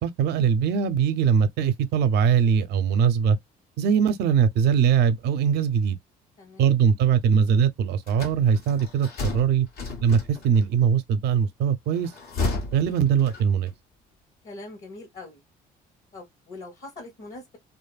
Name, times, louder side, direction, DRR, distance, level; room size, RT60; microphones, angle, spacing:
voice 1, 0.0-3.4 3.8-6.0 6.6-9.7 10.0-12.1 12.7-13.7, right 7 dB, 75° right, 0.6 m, -21 dB
voice 2, 6.4-6.7 14.4-15.4 16.1-17.6, left 2 dB, 50° left, 1.3 m, -42 dB
sound 1, 8.1-10.6 12.0-13.8, left 3 dB, 70° left, 1.5 m, -33 dB
2.8 x 2.6 x 2.3 m
cardioid pair, 110°, 17 cm